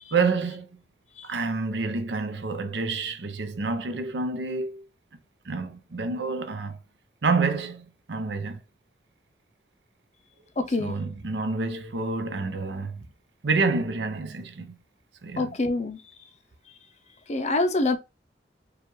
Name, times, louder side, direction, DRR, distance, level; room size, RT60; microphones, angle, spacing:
voice 1, 0.1-0.7 1.2-4.9 5.5-6.8 7.2-8.6 10.8-13.1 13.4-14.8 15.2-15.5, right 4 dB, 75° right, 0.6 m, -28 dB
voice 2, 10.6-11.0 15.4-16.0 17.3-18.0, left 2 dB, 40° left, 0.5 m, -25 dB
4.9 x 2.4 x 3.1 m
head